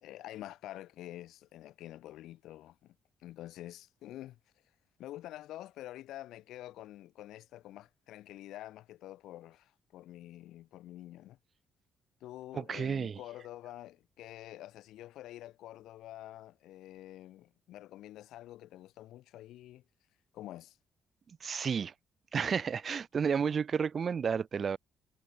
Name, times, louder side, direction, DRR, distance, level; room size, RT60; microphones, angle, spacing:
voice 1, 0.0-2.9 3.2-4.4 5.0-11.4 12.2-19.8 20.3-20.8, left 14 dB, 85° left, 1.3 m, -47 dB
voice 2, 12.5-13.2 21.4-21.9 22.3-24.8, right 6 dB, 45° right, 1.1 m, -31 dB
cardioid pair, 90°, 0 cm